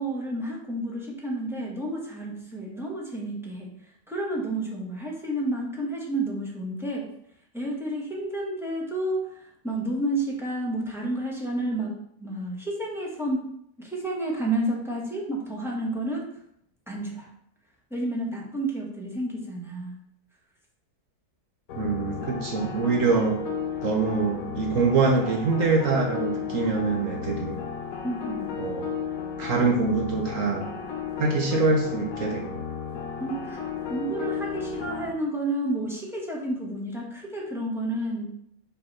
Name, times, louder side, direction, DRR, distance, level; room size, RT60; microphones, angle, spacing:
voice 1, 0.0-7.1 7.5-13.4 13.8-16.3 16.9-17.3 17.9-20.0 28.0-28.5 33.2-33.6 33.9-38.3, right 1 dB, ahead, -3 dB, 1.2 m, -30 dB
sound 1, 21.7-35.1, left 6 dB, 65° left, 1.1 m, -33 dB
voice 2, 21.8-23.4 23.8-27.6 28.6-28.9 29.4-30.7 31.2-32.6, right 4 dB, 60° right, 1 dB, 1.2 m, -24 dB
5.9 x 3.3 x 5.4 m, 0.71 s
omnidirectional pair, 1.7 m